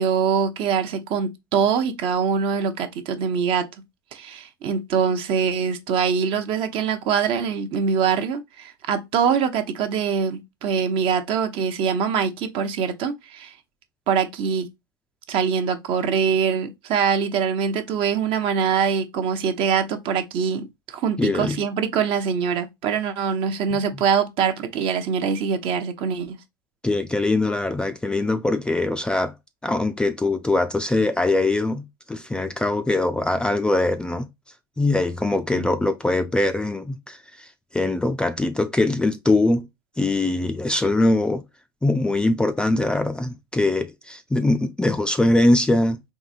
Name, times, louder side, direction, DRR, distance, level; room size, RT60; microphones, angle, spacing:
voice 1, 0.0-3.7 4.1-13.6 14.1-14.7 15.3-26.4 35.5-35.7, right 6 dB, 45° right, 0.7 m, -23 dB
voice 2, 21.2-21.6 26.8-29.3 29.6-34.3 34.8-37.5 37.7-39.7 40.0-41.4 41.8-46.1, left 2 dB, 5° left, 0.3 m, -22 dB
3.9 x 2.7 x 2.4 m
hypercardioid pair, 95°, 12 cm